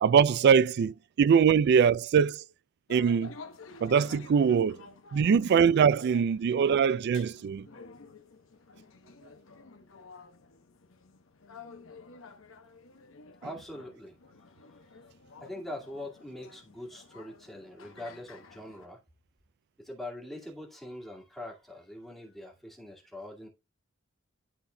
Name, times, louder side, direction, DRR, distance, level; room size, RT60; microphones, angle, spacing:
voice 1, 0.0-2.4 2.9-3.3 3.8-4.8 5.1-7.6, right 7 dB, 55° right, 0.3 m, -22 dB
sound 1, 2.9-18.9, left 4 dB, 75° left, 0.9 m, -51 dB
voice 2, 13.4-14.2 14.9-15.0 15.4-19.0 19.8-23.5, left 1 dB, ahead, 2.2 m, -43 dB
11.5 x 4.1 x 2.2 m
head